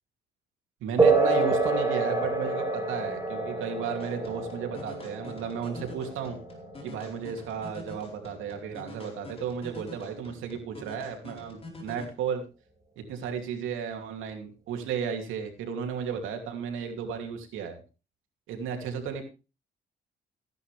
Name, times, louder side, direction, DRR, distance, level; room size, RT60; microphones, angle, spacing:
voice 1, 0.8-6.4 6.8-12.4 13.0-17.8 18.5-19.2, right 7 dB, 90° right, 4 dB, 2.7 m, -34 dB
sound 1, 1.0-9.0, right 3 dB, 15° right, 3.1 m, -28 dB
sound 2, 4.0-12.0, left 3 dB, 30° left, 4.3 m, -47 dB
15.0 x 10.5 x 3.4 m, 0.32 s
cardioid pair, 90°, 20 cm